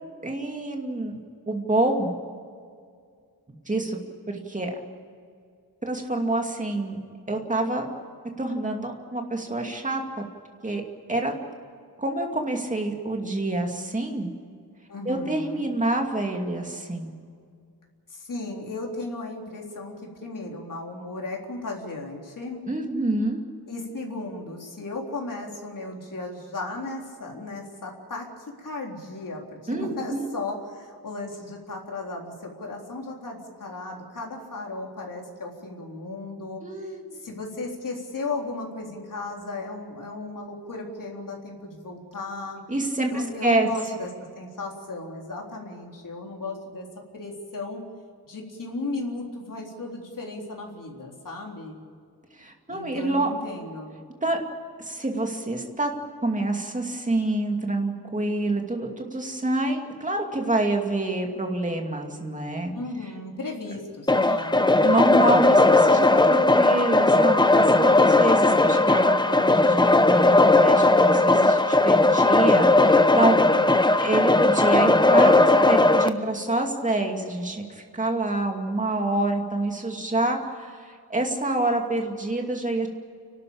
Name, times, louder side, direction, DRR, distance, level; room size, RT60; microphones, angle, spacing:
voice 1, 0.2-1.2 1.5-2.1 3.7-4.0 4.3-4.7 5.8-7.0 7.3-7.9 8.4-10.2 10.6-10.8 11.1-11.3 12.0-14.3 15.0-17.1 22.7-23.4 29.7-30.3 36.6-37.2 42.7-43.7 52.4-53.3 54.2-54.4 54.8-55.9 56.2-62.7 64.8-73.4 74.0-82.9, right 2 dB, 20° right, 2 dB, 2.5 m, -27 dB
voice 2, 14.9-15.7 18.1-19.9 20.2-22.6 23.7-36.6 37.2-42.6 43.1-44.1 44.4-46.9 47.1-47.8 48.2-51.8 52.7-54.0 62.7-64.7, left 2 dB, 55° left, 0 dB, 3.9 m, -35 dB
sound 1, 64.1-76.1, left 2 dB, 10° left, 0.7 m, -18 dB
30.0 x 12.5 x 8.7 m, 2.1 s
wide cardioid pair, 160°, 38 cm